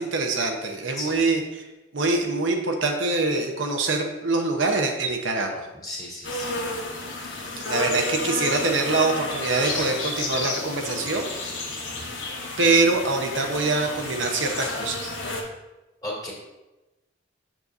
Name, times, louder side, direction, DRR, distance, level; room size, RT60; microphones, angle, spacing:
voice 1, 0.0-1.6 1.9-5.7 7.7-11.3 12.6-15.0, right 3 dB, 75° right, 2 dB, 0.9 m, -24 dB
voice 2, 1.0-1.3 5.8-6.5 7.3-7.5 16.0-16.3, left 1 dB, 20° left, -5 dB, 2.2 m, -35 dB
sound 1, 6.2-15.4, left 2 dB, 80° left, 1.2 m, -31 dB
7.4 x 6.8 x 2.6 m, 1.0 s
head